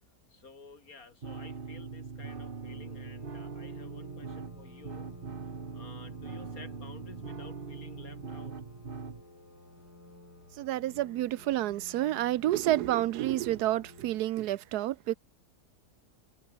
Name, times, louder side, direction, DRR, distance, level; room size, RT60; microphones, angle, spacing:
voice 1, 0.3-5.1 5.7-8.6, left 4 dB, 65° left, 3.2 m, -52 dB
sound 1, 1.2-9.2, right 5 dB, 35° right, 1.5 m, -41 dB
sound 2, 2.7-14.2, left 2 dB, 80° left, 8.5 m, -53 dB
voice 2, 10.6-15.2, right 14 dB, 85° right, 1.2 m, -29 dB
omnidirectional pair, 1.6 m